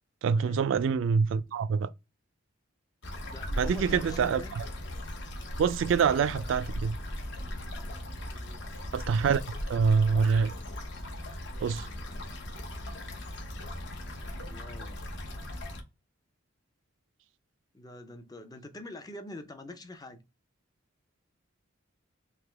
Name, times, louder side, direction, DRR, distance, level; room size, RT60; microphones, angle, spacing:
voice 1, 0.2-1.9 3.6-4.6 5.6-7.0 8.9-9.4 9.7-10.5 11.6-11.9, right 6 dB, 65° right, 0.3 m, -25 dB
sound 1, 3.0-15.8, left 1 dB, 60° left, 0.9 m, -38 dB
voice 2, 3.3-4.6 8.2-8.7 11.8-12.5 14.5-15.0 17.7-20.2, left 1 dB, 20° left, 0.5 m, -45 dB
3.4 x 2.8 x 3.3 m
head